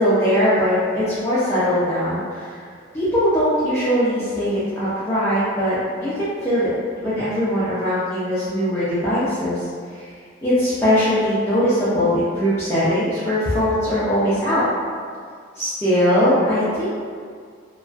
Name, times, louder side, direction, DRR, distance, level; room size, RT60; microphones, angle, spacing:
voice 1, 0.0-2.5 2.9-6.7 7.0-10.1 10.4-14.7 15.6-16.9, equal, 15° left, -13 dB, 0.4 m, -20 dB
2.3 x 2.3 x 2.4 m, 2.1 s
head